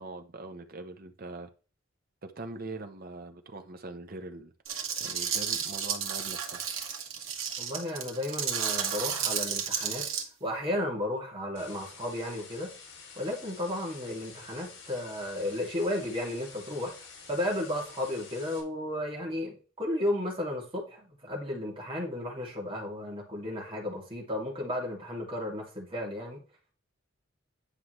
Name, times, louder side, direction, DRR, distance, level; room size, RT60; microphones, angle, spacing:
voice 1, 0.0-1.5 2.2-4.5 5.0-6.7, right 2 dB, 45° right, 1.0 m, -42 dB
sound 1, 4.7-10.2, right 7 dB, 80° right, 1.7 m, -32 dB
voice 2, 7.6-10.1 10.4-12.7 13.2-16.9 17.3-26.4, left 1 dB, 25° right, 2.6 m, -33 dB
sound 2, 11.5-18.6, left 5 dB, 80° left, 3.3 m, -49 dB
10.0 x 5.7 x 3.2 m
head